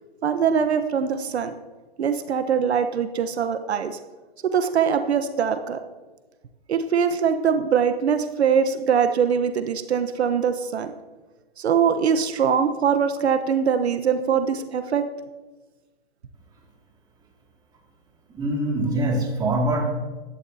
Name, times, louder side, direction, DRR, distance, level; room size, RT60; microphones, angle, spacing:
voice 1, 0.2-1.5 2.0-4.0 4.4-5.8 6.7-10.9 11.6-15.0, right 7 dB, 85° right, 9 dB, 1.1 m, -22 dB
voice 2, 18.3-19.9, right 1 dB, 10° right, -1 dB, 2.3 m, -23 dB
16.0 x 11.5 x 2.8 m, 1.2 s
hypercardioid pair, 145°, 32 cm